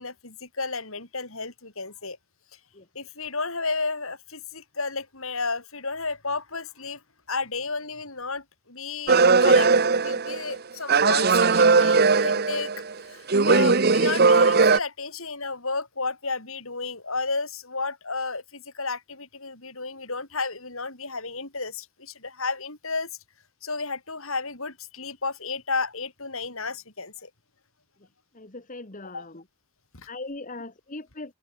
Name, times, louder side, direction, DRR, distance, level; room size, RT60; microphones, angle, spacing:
voice 1, 0.0-2.2 2.9-7.0 7.3-9.7 10.0-12.7 13.0-23.1 23.6-27.3 29.1-29.3 29.9-30.1, left 4 dB, 65° left, 5.9 m, -32 dB
sound 1, 9.1-10.6 10.9-12.9 13.3-14.8, right 4 dB, 45° right, 1.0 m, -19 dB
voice 2, 28.3-29.4 30.1-31.3, left 2 dB, 35° left, 1.7 m, -39 dB
open air
head